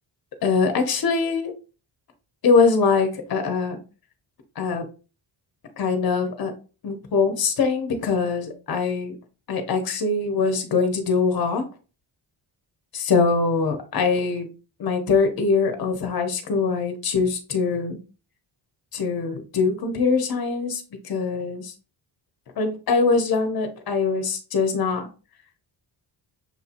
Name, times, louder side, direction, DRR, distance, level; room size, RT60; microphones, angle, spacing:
voice 1, 0.4-1.5 2.4-3.8 4.6-4.8 5.8-6.5 6.8-9.1 9.5-11.6 12.9-14.5 14.8-18.0 18.9-21.7 22.6-25.1, left 4 dB, 50° left, 6 dB, 1.0 m, -23 dB
6.5 x 2.7 x 2.5 m, 0.34 s
cardioid pair, 100°, 46 cm